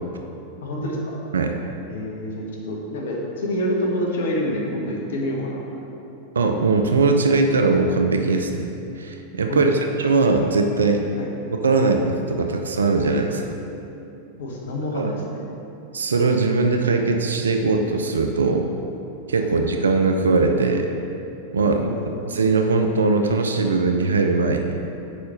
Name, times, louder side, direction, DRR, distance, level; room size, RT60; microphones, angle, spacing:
voice 1, 0.6-1.2 1.9-5.6 9.5-9.7 11.2-11.3 14.4-15.4 19.4-19.5 21.6-22.1, equal, 65° left, -2 dB, 1.0 m, -27 dB
voice 2, 6.4-8.7 9.0-11.0 11.6-13.5 14.9-15.1 15.9-18.7 19.3-20.9 21.5-21.8 22.3-24.8, right 3 dB, 70° right, 4 dB, 0.4 m, -20 dB
4.9 x 4.3 x 5.3 m, 2.9 s
figure-of-eight pair, 90°, 0 cm